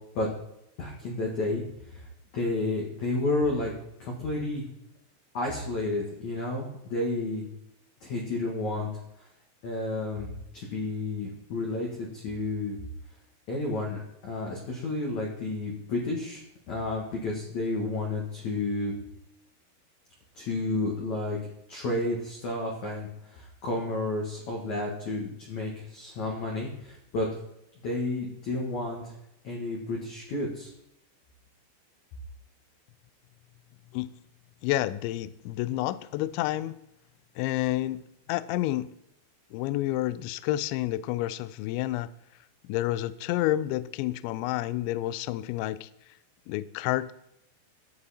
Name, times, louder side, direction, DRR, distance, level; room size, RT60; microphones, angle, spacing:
voice 1, 0.8-1.6 1.9-2.0 2.3-3.7 4.0-4.7 5.3-7.4 8.0-8.9 9.2-9.3 9.6-12.8 13.5-18.9 20.3-21.4 21.7-27.3 27.8-29.1 29.4-30.7, left 2 dB, 65° left, -2 dB, 1.8 m, -31 dB
voice 2, 34.6-36.7 37.4-38.0 38.3-38.9 39.5-42.1 42.6-45.9 46.5-47.1, left 15 dB, 90° left, 16 dB, 2.6 m, -29 dB
12.5 x 7.7 x 4.2 m, 0.84 s
omnidirectional pair, 5.8 m